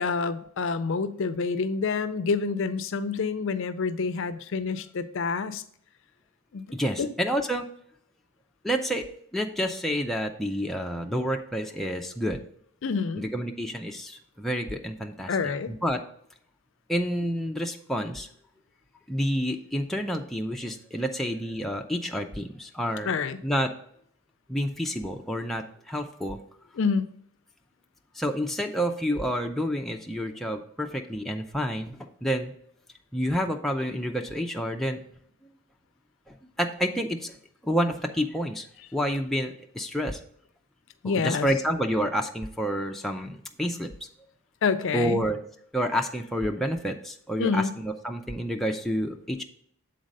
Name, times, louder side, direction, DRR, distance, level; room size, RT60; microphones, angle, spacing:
voice 1, 0.0-5.6 6.5-6.7 7.0-7.1 12.8-13.3 15.3-15.7 23.0-23.4 26.8-27.1 41.0-41.5 44.6-45.2 47.4-47.7, left 5 dB, 60° left, 12 dB, 0.4 m, -27 dB
voice 2, 6.7-7.7 8.6-12.4 13.2-15.3 15.7-16.0 16.9-18.3 19.1-23.1 23.4-23.7 24.5-26.4 28.1-32.5 33.1-35.0 36.6-37.4 37.6-38.7 38.9-40.2 41.0-43.9 44.9-45.4 45.7-49.4, equal, ahead, 1 dB, 0.4 m, -29 dB
7.5 x 4.0 x 5.2 m, 0.66 s
head